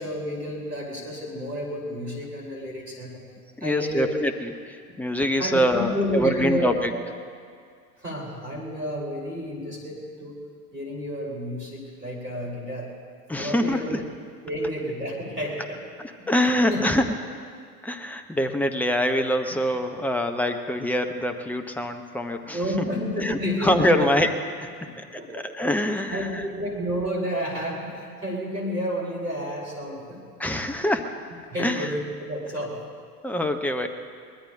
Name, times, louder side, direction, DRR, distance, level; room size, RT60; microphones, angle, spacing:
voice 1, 0.0-3.2 3.6-4.2 4.9-5.0 5.4-7.0 8.0-10.4 10.7-12.9 13.4-14.0 14.4-15.8 16.2-16.9 22.5-24.2 24.8-25.5 25.9-30.2 31.5-32.8, equal, 85° right, -2 dB, 4.3 m, -31 dB
voice 2, 3.6-7.1 13.3-14.0 16.0-17.2 17.8-22.9 23.2-24.3 24.6-26.5 30.4-31.2 31.6-32.0 33.2-33.9, left 1 dB, 5° left, 7 dB, 0.8 m, -25 dB
23.0 x 20.0 x 2.7 m, 2.2 s
figure-of-eight pair, 85°, 47 cm